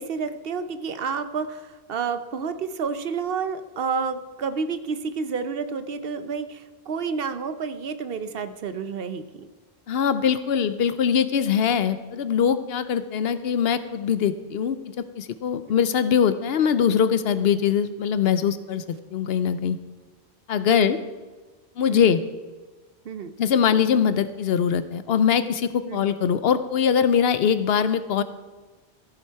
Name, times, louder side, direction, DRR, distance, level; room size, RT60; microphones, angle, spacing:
voice 1, 0.0-9.5 20.7-20.9 21.9-22.2 23.0-23.3 25.9-26.0, right 5 dB, 65° right, 11 dB, 0.8 m, -30 dB
voice 2, 9.9-18.8 19.1-19.8 20.5-21.0 21.8-22.2 23.4-28.2, left 7 dB, 70° left, 12 dB, 0.8 m, -22 dB
14.0 x 7.3 x 4.6 m, 1.3 s
omnidirectional pair, 1.1 m